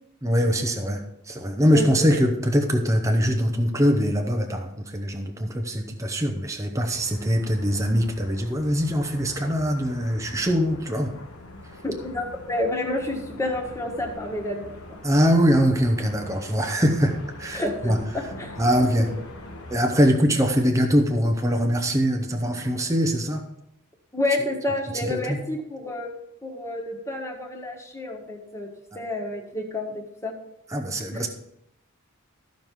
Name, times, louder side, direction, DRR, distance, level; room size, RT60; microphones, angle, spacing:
voice 1, 0.2-11.1 15.0-18.0 18.6-19.1 19.7-23.4 24.9-25.4 28.9-29.0 30.7-31.3, equal, 15° right, 3 dB, 0.7 m, -22 dB
sound 1, 6.9-19.8, left 2 dB, 85° left, 1.2 m, -43 dB
voice 2, 11.8-15.0 17.5-18.5 19.0-19.1 24.1-26.1 26.4-28.7 28.9-30.3 31.1-31.3, left 1 dB, 15° left, 0 dB, 1.5 m, -29 dB
13.5 x 5.3 x 4.6 m, 0.81 s
head